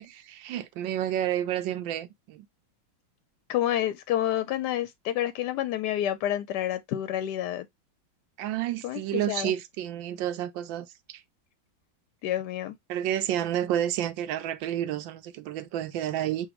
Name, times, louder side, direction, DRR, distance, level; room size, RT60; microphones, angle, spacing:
voice 1, 0.4-2.5 8.4-11.2 12.9-16.5, right 11 dB, 75° right, 1.3 m, -30 dB
voice 2, 3.5-7.7 8.8-9.5 12.2-12.8, left 12 dB, 70° left, 1.0 m, -29 dB
6.9 x 2.5 x 2.9 m
omnidirectional pair, 2.2 m